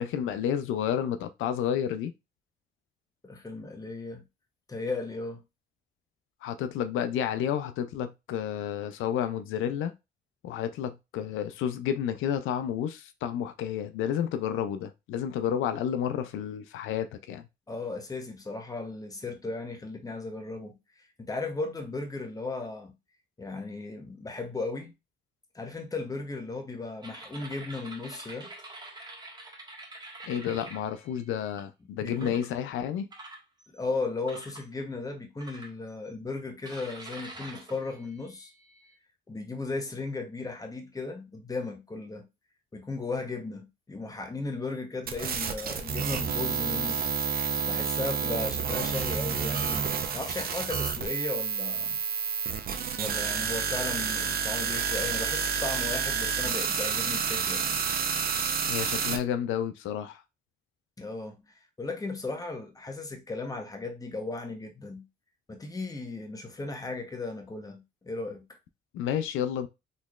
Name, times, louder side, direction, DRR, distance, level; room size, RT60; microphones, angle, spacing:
voice 1, 0.0-2.1 6.4-9.9 10.4-17.4 30.2-33.1 58.7-60.2 68.9-69.7, left 9 dB, 85° left, 0.4 m, -31 dB
voice 2, 3.2-4.2 4.7-5.4 17.7-20.8 21.2-22.9 23.4-24.9 25.5-28.5 32.0-32.4 33.7-38.5 39.3-42.3 42.7-47.0 47.7-52.0 53.0-57.8 61.0-61.4 61.8-65.0 65.5-68.6, left 3 dB, 20° left, 0.9 m, -36 dB
sound 1, 27.0-31.6 32.1-32.5 33.1-33.8 34.3-34.7 35.4-36.1 36.6-39.0, right 2 dB, 20° right, 1.3 m, -46 dB
sound 2, 45.1-59.2, right 6 dB, 50° right, 0.7 m, -29 dB
3.9 x 3.1 x 2.4 m
cardioid pair, 90°, 20 cm